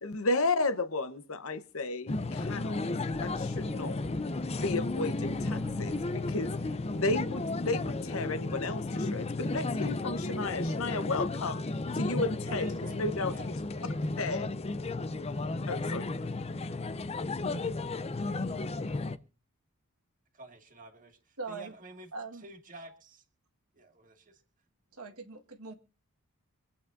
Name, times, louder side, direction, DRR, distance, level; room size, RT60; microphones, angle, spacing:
voice 1, 0.0-2.8 3.2-4.0 4.6-11.7 11.9-12.7 12.9-13.3 14.2-14.5 15.7-16.1, left 2 dB, 65° left, 1.0 m, -33 dB
sound 1, 2.1-19.2, left 2 dB, 30° left, 0.5 m, -33 dB
sound 2, 3.1-8.0, right 2 dB, 10° right, 2.1 m, -52 dB
voice 2, 12.5-13.0 13.3-13.5 13.8-14.1 20.3-23.2 23.7-24.4, right 2 dB, 40° right, 2.0 m, -50 dB
voice 3, 21.4-21.7 22.1-22.5 24.9-25.7, right 4 dB, 85° right, 1.6 m, -41 dB
25.5 x 8.6 x 2.6 m
head